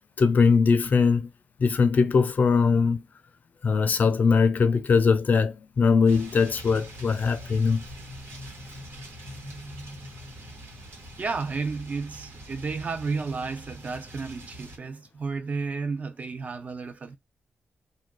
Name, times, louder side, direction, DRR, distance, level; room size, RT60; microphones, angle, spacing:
voice 1, 0.2-1.3 1.6-3.0 3.6-7.8, left 5 dB, 45° left, 0.5 m, -21 dB
sound 1, 6.1-14.8, equal, 90° right, 1.4 m, -43 dB
voice 2, 11.2-17.2, right 4 dB, 35° right, 0.5 m, -32 dB
2.7 x 2.5 x 3.7 m
wide cardioid pair, 150°, 4 cm